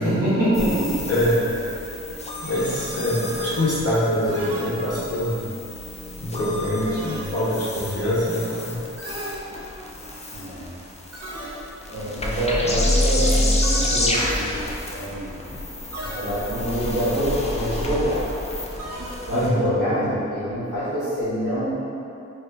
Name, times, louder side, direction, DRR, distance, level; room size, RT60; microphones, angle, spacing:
voice 1, 0.0-1.1 2.1-2.2 10.3-10.7 11.9-15.4 16.0-18.2 19.3-21.7, equal, 90° right, -13 dB, 1.5 m, -25 dB
sound 1, 0.5-19.5, left 1 dB, 25° left, 0.4 m, -29 dB
voice 2, 1.1-1.4 2.4-5.4 6.2-8.8 19.3-19.6, left 1 dB, 50° left, -11 dB, 1.2 m, -24 dB
sound 2, 2.4-3.3 4.3-5.3 6.9-7.7 9.0-10.0 11.1-12.0 13.6-14.6 15.9-16.7 18.8-19.7, right 1 dB, 55° right, 0.7 m, -37 dB
4.3 x 2.8 x 2.2 m, 2.8 s
wide cardioid pair, 65°, 30 cm